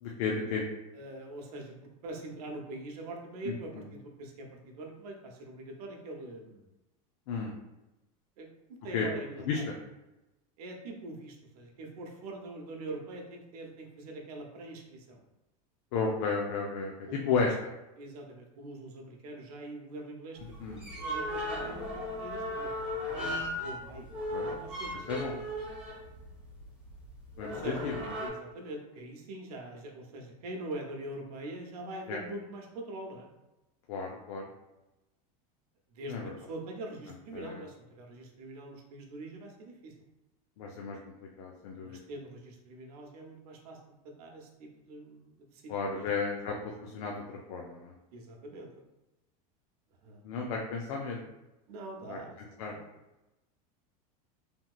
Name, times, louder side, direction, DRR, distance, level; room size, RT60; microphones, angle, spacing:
voice 1, 0.0-0.6 3.4-3.9 7.3-7.5 8.9-9.1 9.5-9.6 15.9-17.5 20.6-20.8 24.3-24.5 24.9-25.3 27.4-28.1 32.1-32.2 33.9-34.5 36.1-36.3 37.3-37.6 40.6-41.0 41.4-42.0 45.7-47.9 50.2-51.2 52.1-52.2 52.6-52.7, left 5 dB, 70° left, 0 dB, 0.5 m, -33 dB
voice 2, 0.9-1.7 2.0-6.7 8.4-8.5 8.8-9.6 10.6-15.2 17.1-17.3 18.0-24.1 24.5-25.5 27.5-27.8 28.2-33.3 35.9-39.9 41.8-43.8 44.0-46.1 48.1-48.7 50.0-50.2 51.7-52.4 52.7-52.8, right 2 dB, 90° right, 1 dB, 0.8 m, -43 dB
sound 1, 20.4-28.3, left 1 dB, 5° right, 1.1 m, -37 dB
3.4 x 2.7 x 2.3 m, 0.98 s
supercardioid pair, 150°, 19 cm